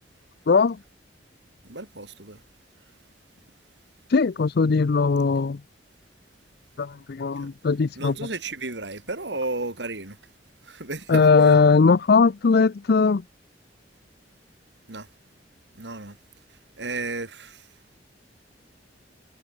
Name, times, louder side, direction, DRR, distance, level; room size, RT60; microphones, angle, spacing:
voice 1, 1.6-2.4 7.4-7.5 8.0-10.2 10.7-11.3 14.9-15.1 15.8-16.2 16.8-17.6, right 2 dB, 70° right, 3.8 m, -33 dB
voice 2, 4.1-5.6 6.8-8.2 11.1-13.2, left 4 dB, 60° left, 0.5 m, -19 dB
head